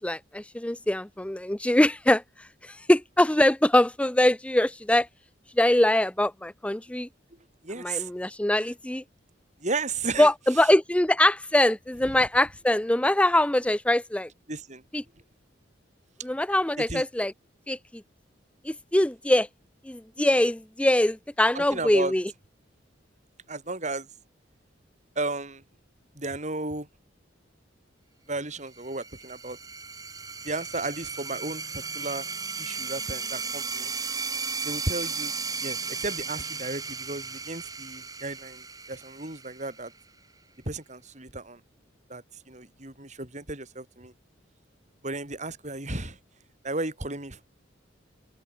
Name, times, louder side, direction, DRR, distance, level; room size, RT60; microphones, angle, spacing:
voice 1, 0.0-2.2 2.6-5.1 5.6-7.1 7.8-9.0 10.2-14.3 14.9-15.0 16.2-17.3 17.7-18.0 18.6-19.5 19.8-22.3, left 1 dB, 5° left, 0.5 m, -23 dB
voice 2, 7.6-8.1 9.6-10.3 14.5-14.8 16.8-17.0 21.5-22.1 23.5-24.1 25.2-25.6 26.2-26.9 28.3-29.6 30.4-32.3 32.6-33.9 34.6-35.3 35.6-39.9 40.7-41.6 42.1-44.1 45.0-46.2 46.6-47.4, right 2 dB, 40° right, 5.9 m, -34 dB
sound 1, 28.8-40.0, right 5 dB, 20° right, 3.6 m, -35 dB
open air
head